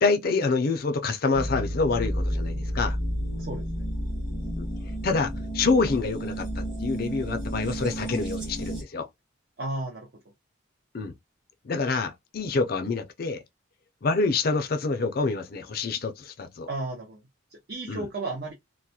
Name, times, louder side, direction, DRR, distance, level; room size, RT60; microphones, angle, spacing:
voice 1, 0.0-3.0 4.6-4.7 5.0-9.1 10.9-11.1 11.6-13.4 14.0-16.7 17.9-18.1, left 4 dB, 50° left, 0.4 m, -27 dB
sound 1, 1.3-8.8, equal, 25° right, 1.0 m, -31 dB
voice 2, 9.6-10.1 16.7-17.2 17.5-18.5, right 2 dB, 50° right, 0.6 m, -33 dB
2.3 x 2.0 x 2.7 m
head